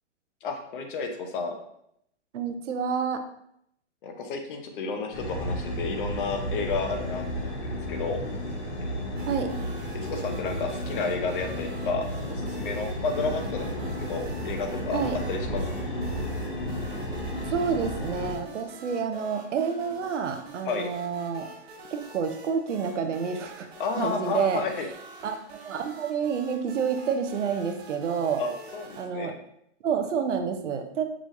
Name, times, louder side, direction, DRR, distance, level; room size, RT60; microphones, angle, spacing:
voice 1, 0.4-1.5 4.0-8.2 9.9-15.0 15.3-15.6 20.7-20.9 23.8-24.9 28.4-29.3, left 4 dB, 45° left, 5 dB, 0.8 m, -31 dB
voice 2, 2.3-3.2 9.3-9.5 14.9-15.2 17.5-21.5 21.9-23.7 24.0-24.6 25.2-28.4 29.0-29.4 29.8-31.0, right 6 dB, 75° right, 7 dB, 0.8 m, -29 dB
sound 1, 5.1-18.3, equal, 80° left, 1.9 m, -33 dB
sound 2, 9.2-29.0, right 3 dB, 60° right, 1.2 m, -47 dB
6.1 x 3.1 x 2.6 m, 0.74 s
hypercardioid pair, 145°, 36 cm